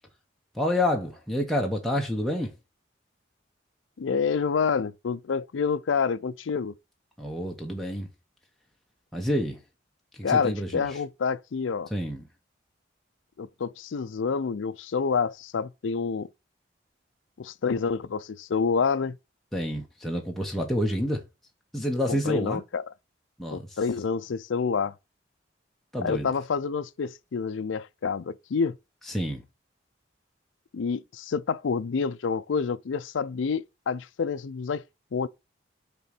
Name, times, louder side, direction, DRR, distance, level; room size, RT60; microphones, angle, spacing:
voice 1, 0.5-2.5 7.2-8.1 9.1-9.6 10.3-10.8 11.9-12.2 19.5-21.2 21.7-22.6 23.4-23.8 25.9-26.3 29.1-29.4, left 1 dB, ahead, 1.0 m, -28 dB
voice 2, 4.0-6.7 10.2-11.9 13.4-16.3 17.4-19.2 22.1-22.9 23.5-24.9 26.0-28.8 30.7-34.8 35.1-35.3, left 5 dB, 85° left, 0.4 m, -28 dB
6.7 x 3.8 x 6.0 m
head